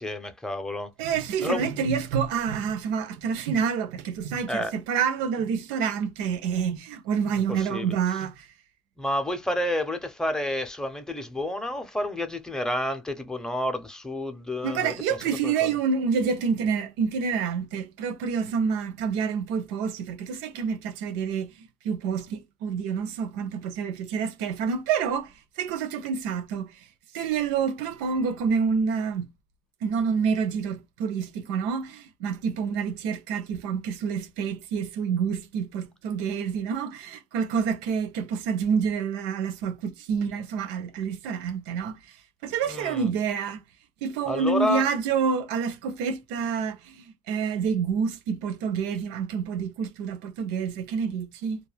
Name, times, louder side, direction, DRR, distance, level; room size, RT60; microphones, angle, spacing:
voice 1, 0.0-0.9 1.4-1.6 4.5-4.7 7.5-8.0 9.0-14.9 15.4-15.7 42.7-43.1 44.3-44.9, left 1 dB, 5° left, 0.6 m, -30 dB
voice 2, 1.0-8.5 14.6-26.8 27.1-29.3 29.8-42.0 42.4-43.6 44.0-51.6, right 6 dB, 80° right, 0.6 m, -28 dB
2.3 x 2.1 x 3.2 m
supercardioid pair, 95°, 18 cm